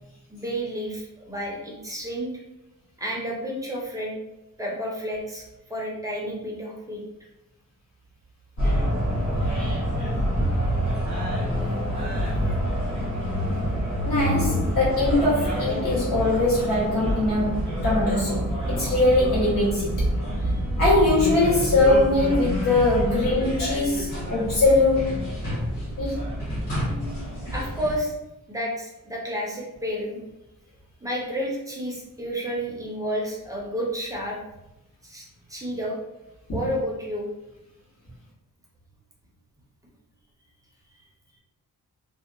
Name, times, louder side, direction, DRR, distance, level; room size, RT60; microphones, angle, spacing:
voice 1, 0.3-2.4 3.0-4.2 4.6-5.4 5.7-7.0 20.4-20.5 27.5-28.2 28.5-30.2 31.0-34.4 35.0-36.0 36.5-37.3, equal, 10° right, -3 dB, 0.4 m, -31 dB
sound 1, 8.6-28.0, equal, 90° left, 1.2 m, -27 dB
voice 2, 14.0-20.0 20.8-25.2 26.0-26.3 36.5-36.6, left 2 dB, 70° left, -8 dB, 1.3 m, -22 dB
2.7 x 2.1 x 2.5 m, 0.93 s
wide cardioid pair, 175°, 35 cm